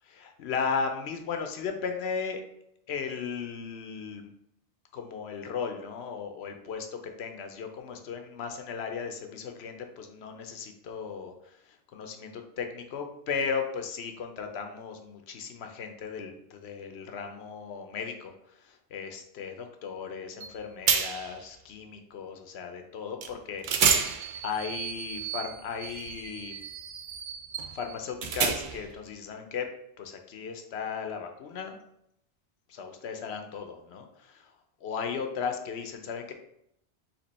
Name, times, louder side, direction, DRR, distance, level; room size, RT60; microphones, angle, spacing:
voice 1, 0.0-2.4 2.9-4.3 4.9-18.3 18.6-26.6 27.7-29.7 30.0-31.8 32.7-34.5 34.8-36.3, left 6 dB, 70° left, 5 dB, 0.8 m, -36 dB
sound 1, 20.4-20.5 20.9-21.4 23.2-23.3 23.6-28.9, right 7 dB, 60° right, 0.6 m, -30 dB
4.4 x 2.8 x 4.1 m, 0.77 s
omnidirectional pair, 1.2 m